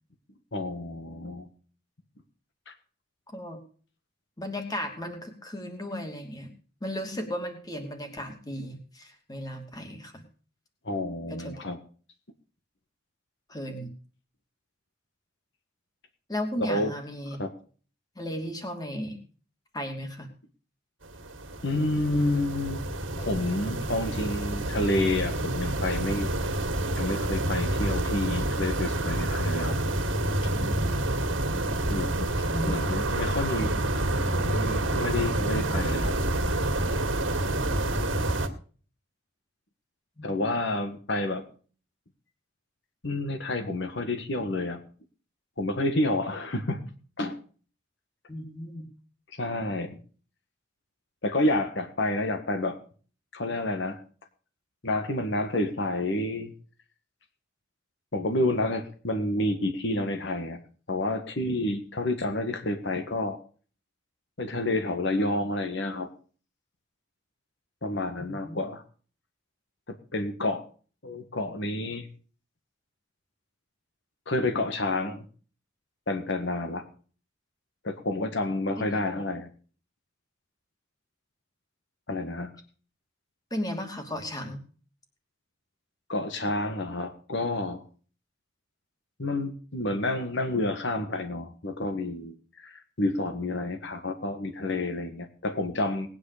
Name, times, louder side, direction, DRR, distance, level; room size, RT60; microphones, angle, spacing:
voice 1, 0.5-1.5 2.7-2.8 10.8-11.8 16.6-16.9 17.4-17.5 21.6-22.8 23.2-26.3 27.0-29.8 30.4-30.5 31.9-32.3 32.6-33.8 34.4-36.1 40.2-41.4 43.0-44.8 45.6-46.8 47.2-47.4 49.4-50.0 51.2-52.8 53.3-54.0 54.8-56.5 58.1-60.6 60.9-63.4 64.4-66.1 67.8-68.8 70.1-70.6 71.0-72.1 74.3-75.2 76.1-76.8 77.8-79.5 82.1-82.5 86.1-87.8 89.2-96.1, left 1 dB, 60° left, 7 dB, 1.7 m, -29 dB
voice 2, 4.4-6.5 6.8-10.2 11.3-11.7 13.5-13.9 16.3-17.4 18.1-19.2 19.7-20.3 32.5-32.9 40.2-40.3 48.3-48.9 68.2-68.6 78.9-79.2 83.5-84.6, left 1 dB, 20° left, 5 dB, 2.8 m, -35 dB
sound 1, 21.0-38.5, right 1 dB, 65° right, 2.3 m, -28 dB
19.5 x 9.6 x 5.0 m, 0.41 s
head